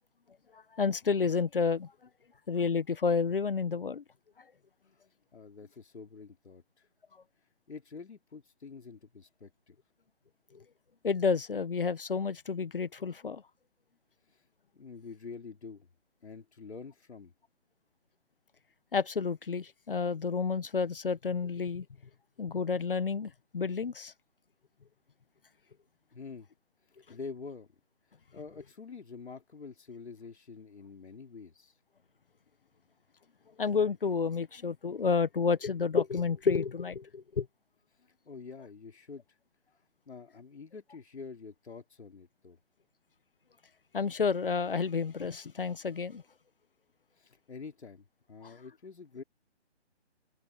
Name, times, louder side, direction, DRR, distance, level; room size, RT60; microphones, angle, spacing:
voice 1, 0.5-1.9 2.5-4.0 10.5-10.6 11.0-13.4 18.9-21.8 22.4-24.1 33.6-37.5 43.9-46.2 48.4-48.5, left 5 dB, 50° left, 1.1 m, -30 dB
voice 2, 5.3-6.9 7.7-9.8 14.3-14.4 14.7-15.9 16.2-17.3 26.1-26.5 26.8-27.7 28.1-31.8 38.2-39.4 39.7-42.6 47.1-49.2, left 5 dB, 70° left, 3.2 m, -47 dB
open air
hypercardioid pair, 175°, 34 cm